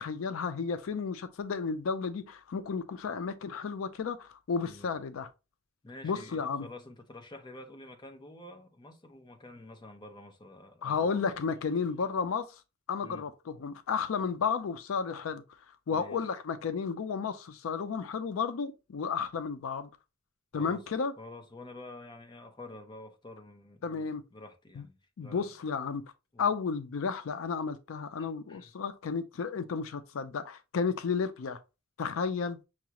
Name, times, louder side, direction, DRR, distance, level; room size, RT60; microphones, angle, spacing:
voice 1, 0.0-5.3 6.0-6.7 10.8-12.6 12.9-15.4 15.9-19.9 20.5-21.1 23.8-24.2 24.8-24.9 25.2-26.0 26.4-31.6 32.0-32.6, left 5 dB, 85° left, 0.4 m, -32 dB
voice 2, 5.8-11.4 13.0-13.3 15.9-16.3 20.5-20.8 21.2-25.5 26.3-26.5 28.2-28.7, left 2 dB, 20° left, 0.7 m, -49 dB
5.8 x 2.4 x 2.9 m
head